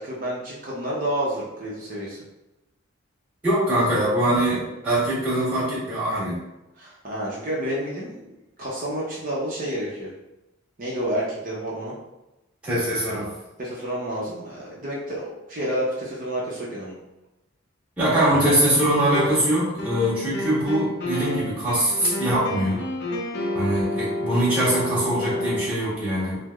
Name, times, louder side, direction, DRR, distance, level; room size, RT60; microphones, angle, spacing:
voice 1, 0.0-2.2 6.8-8.2 8.6-10.1 10.8-11.9 13.6-16.9, right 1 dB, 40° right, -5 dB, 0.7 m, -29 dB
voice 2, 3.4-6.4 12.6-13.3 18.0-22.8 23.5-26.4, right 1 dB, 5° right, -11 dB, 1.3 m, -22 dB
sound 1, 18.3-19.5 19.8-25.7, left 1 dB, 50° left, 0.5 m, -29 dB
3.3 x 2.0 x 3.4 m, 0.97 s
head